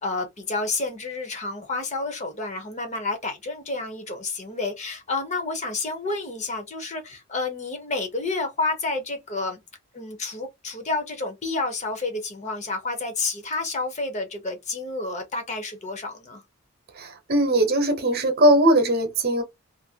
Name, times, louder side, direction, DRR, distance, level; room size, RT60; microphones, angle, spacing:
voice 1, 0.0-9.6 9.9-16.4, left 3 dB, 30° left, 0.8 m, -30 dB
voice 2, 17.0-19.4, right 1 dB, 45° right, 0.9 m, -20 dB
2.8 x 2.6 x 2.7 m
head